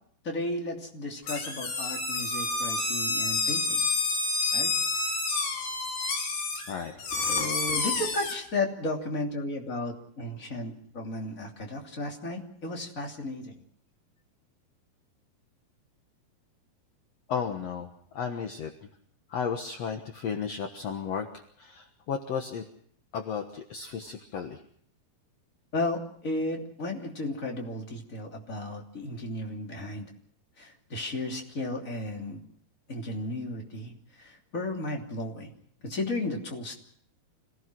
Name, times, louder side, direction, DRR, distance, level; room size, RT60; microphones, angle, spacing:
voice 1, 0.2-3.9 4.5-4.7 7.3-13.5 25.7-30.1 30.6-32.4 32.9-33.9 34.2-35.5 35.8-36.8, left 2 dB, 20° left, 1 dB, 2.8 m, -34 dB
sound 1, 1.3-8.4, left 3 dB, 90° left, 6.4 m, -29 dB
voice 2, 17.3-18.9 19.3-21.3 21.6-22.6 23.1-24.6, left 6 dB, 60° left, 4 dB, 1.8 m, -34 dB
26.5 x 18.0 x 6.2 m, 0.63 s
omnidirectional pair, 4.7 m